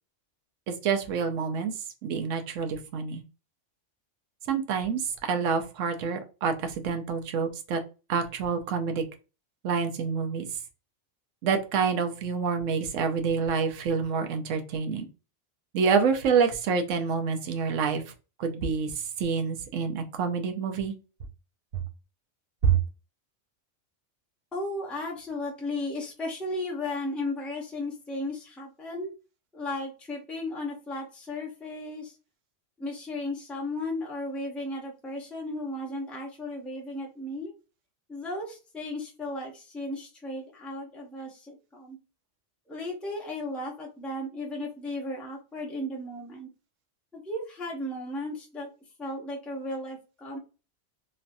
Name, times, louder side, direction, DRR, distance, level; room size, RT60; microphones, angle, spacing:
voice 1, 0.7-1.7 2.0-3.2 4.5-7.8 8.1-9.0 9.6-10.5 11.4-15.1 15.7-18.0 18.4-20.9 21.7-21.8 22.6-22.8, right 6 dB, 85° right, 6 dB, 1.0 m, -27 dB
voice 2, 24.5-29.1 29.5-32.2 32.8-37.5 38.1-42.0 42.7-46.5 47.1-48.7 49.0-50.4, left 1 dB, ahead, -3 dB, 0.6 m, -35 dB
3.1 x 2.5 x 2.5 m, 0.32 s
omnidirectional pair, 1.3 m